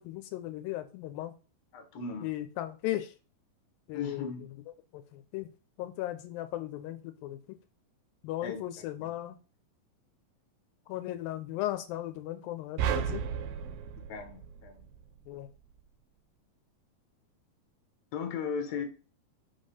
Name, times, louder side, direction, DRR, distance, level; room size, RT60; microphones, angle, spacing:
voice 1, 0.0-1.3 2.2-3.1 3.9-4.3 4.9-5.5 5.8-7.6 8.2-9.4 10.9-13.2 15.3-15.5, left 14 dB, 85° left, 9 dB, 2.3 m, -36 dB
voice 2, 1.7-2.3 3.9-4.4 8.4-9.1 14.1-14.7 18.1-18.8, left 6 dB, 60° left, 7 dB, 1.8 m, -37 dB
sound 1, 12.8-15.2, right 8 dB, 80° right, 2.3 m, -33 dB
5.5 x 3.6 x 5.4 m, 0.34 s
omnidirectional pair, 4.2 m